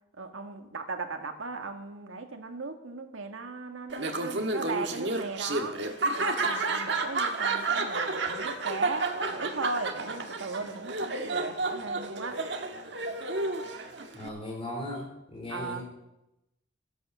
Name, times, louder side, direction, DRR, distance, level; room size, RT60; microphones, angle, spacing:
voice 1, 0.2-5.8 6.2-12.4 15.5-15.8, right 3 dB, 85° right, 6 dB, 1.8 m, -37 dB
Laughter, 3.9-14.3, right 3 dB, 60° right, 1.5 m, -31 dB
voice 2, 14.1-15.8, left 1 dB, 30° left, 0 dB, 4.0 m, -37 dB
13.5 x 11.0 x 6.9 m, 0.90 s
head